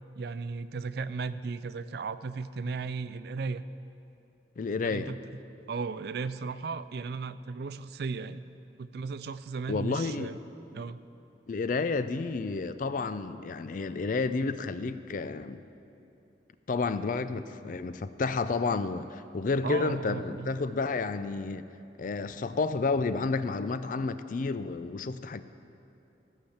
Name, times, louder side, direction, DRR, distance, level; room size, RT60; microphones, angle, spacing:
voice 1, 0.2-3.6 4.8-5.2 5.7-8.5 8.8-10.4 10.7-11.0 19.6-20.6, right 4 dB, 60° right, 14 dB, 0.4 m, -35 dB
voice 2, 4.6-5.1 9.7-10.3 10.8-10.9 11.5-15.6 16.7-21.7 22.0-25.4, left 4 dB, 50° left, 12 dB, 0.4 m, -31 dB
14.5 x 5.7 x 7.1 m, 2.8 s
head